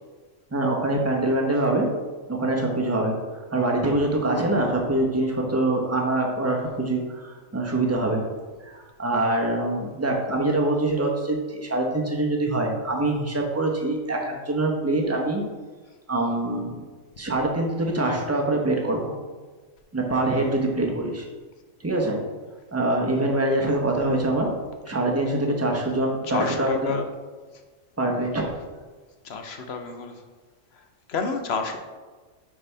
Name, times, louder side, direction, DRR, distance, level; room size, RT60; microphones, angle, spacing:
voice 1, 0.5-1.9 2.3-3.2 3.5-8.3 8.6-15.4 16.1-16.8 17.2-19.1 19.9-21.2 21.8-22.2 22.7-24.5 24.9-27.0 28.0-28.5, right 2 dB, 15° right, 0 dB, 0.8 m, -24 dB
voice 2, 26.2-27.1 29.2-30.2 30.7-30.8 31.1-31.8, left 4 dB, 60° left, 5 dB, 0.9 m, -29 dB
9.4 x 4.2 x 3.4 m, 1.3 s
omnidirectional pair, 1.4 m